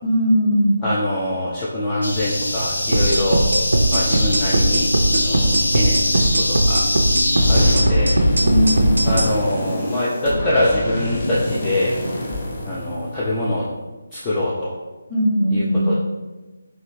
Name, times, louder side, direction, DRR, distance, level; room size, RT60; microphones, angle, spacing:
voice 1, 0.0-0.8 8.4-8.9 15.1-16.0, equal, 5° right, -8 dB, 0.8 m, -19 dB
voice 2, 0.8-3.4 3.9-6.8 7.5-8.2 9.1-12.0 12.6-13.6 14.1-14.7 15.5-16.0, left 1 dB, 15° left, -8 dB, 0.3 m, -24 dB
sound 1, 2.0-7.8, left 1 dB, 65° left, 0.7 m, -23 dB
sound 2, 2.9-9.3, right 1 dB, 65° right, 0.4 m, -18 dB
sound 3, 7.4-13.5, left 1 dB, 35° left, 0.8 m, -25 dB
3.1 x 2.6 x 3.0 m, 1.2 s
figure-of-eight pair, 150°, 0 cm